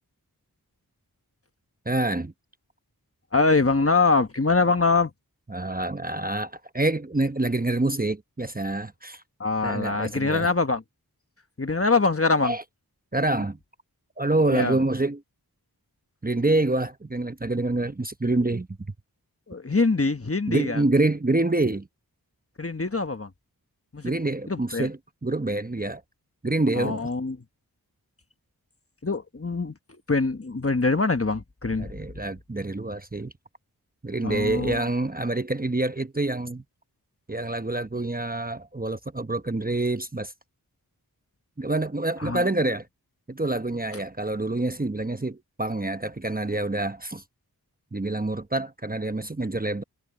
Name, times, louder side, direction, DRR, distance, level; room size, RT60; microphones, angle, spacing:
voice 1, 1.9-2.3 5.5-9.2 9.6-10.5 12.4-12.6 13.1-13.6 14.2-15.2 16.2-18.7 20.5-21.9 24.0-26.0 26.4-27.1 31.8-33.3 34.0-36.6 37.3-40.3 41.6-42.9 43.3-47.2 47.9-49.8, right 2 dB, 25° right, 0.9 m, -26 dB
voice 2, 3.3-5.1 9.4-10.8 11.6-12.6 14.5-14.8 19.5-20.8 22.6-23.3 23.9-24.1 24.5-24.9 26.7-27.4 29.0-29.7 30.1-31.9 34.2-34.8 42.2-42.5, left 3 dB, 35° left, 1.2 m, -24 dB
wide cardioid pair, 50°, 38 cm